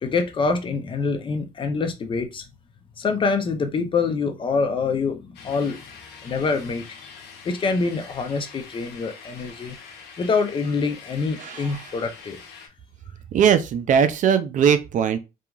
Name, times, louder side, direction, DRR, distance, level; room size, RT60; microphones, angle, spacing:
voice 1, 0.0-2.5 3.0-5.8 6.2-7.1 7.4-9.7 10.2-12.4, left 4 dB, 30° left, 0.5 m, -25 dB
sound 1, 5.3-12.7, left 5 dB, 80° left, 0.7 m, -44 dB
voice 2, 13.3-15.2, right 8 dB, 50° right, 0.4 m, -19 dB
2.8 x 2.4 x 2.3 m
cardioid pair, 110°, 17 cm